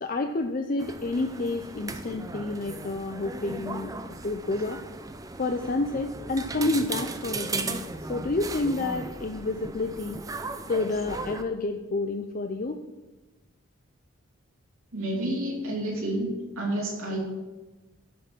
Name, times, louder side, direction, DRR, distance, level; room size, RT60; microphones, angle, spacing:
voice 1, 0.0-3.9 4.2-4.8 5.4-7.8 8.1-10.2 10.7-12.8, left 2 dB, 40° left, 6 dB, 0.5 m, -29 dB
sound 1, 0.8-11.4, right 3 dB, 15° right, 0.4 m, -37 dB
voice 2, 14.9-17.2, right 1 dB, 85° right, -2 dB, 3.1 m, -30 dB
11.0 x 5.9 x 6.2 m, 1.1 s
head